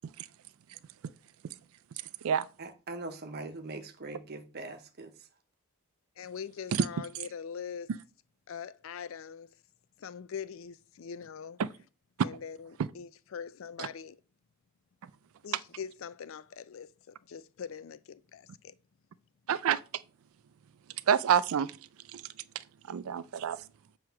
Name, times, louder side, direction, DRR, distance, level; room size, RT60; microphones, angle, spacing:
voice 1, 2.6-5.1, right 2 dB, 45° right, 0.8 m, -42 dB
voice 2, 6.2-7.9 8.5-9.5 10.0-11.6 12.2-14.2 15.4-18.8, left 7 dB, 60° left, 0.4 m, -42 dB
voice 3, 19.5-19.8 21.1-21.7 22.1-22.2 22.9-23.6, right 8 dB, 70° right, 0.3 m, -27 dB
7.7 x 3.0 x 5.7 m
head